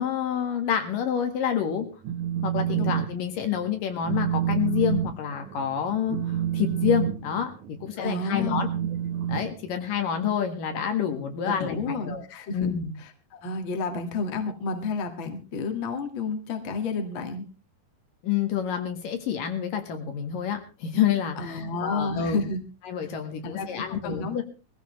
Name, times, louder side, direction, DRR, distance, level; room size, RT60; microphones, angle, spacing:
voice 1, 0.0-1.9 2.4-7.5 7.8-8.7 9.3-12.3 12.5-12.9 18.2-22.4 22.8-24.4, left 8 dB, 70° left, 6 dB, 3.3 m, -28 dB
Telephone, 1.8-3.1 3.4-3.7 4.0-10.2, right 10 dB, 65° right, 2.2 m, -29 dB
voice 2, 8.0-8.7 11.4-12.7 13.3-17.5 21.4-22.6 23.4-24.4, left 4 dB, 40° left, 4 dB, 2.2 m, -31 dB
21.0 x 15.5 x 3.2 m, 0.32 s
omnidirectional pair, 4.1 m